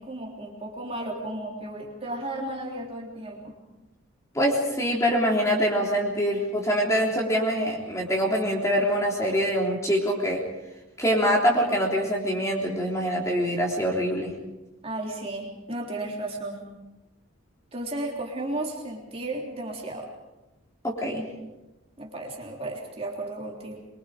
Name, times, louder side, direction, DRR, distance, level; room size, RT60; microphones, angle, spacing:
voice 1, 0.0-3.6 14.8-16.6 17.7-20.1 22.0-23.8, right 2 dB, 30° right, -1 dB, 3.5 m, -34 dB
voice 2, 4.3-10.4 11.0-14.3 20.8-21.3, equal, 15° left, -1 dB, 3.6 m, -24 dB
24.5 x 23.5 x 5.2 m, 1.0 s
head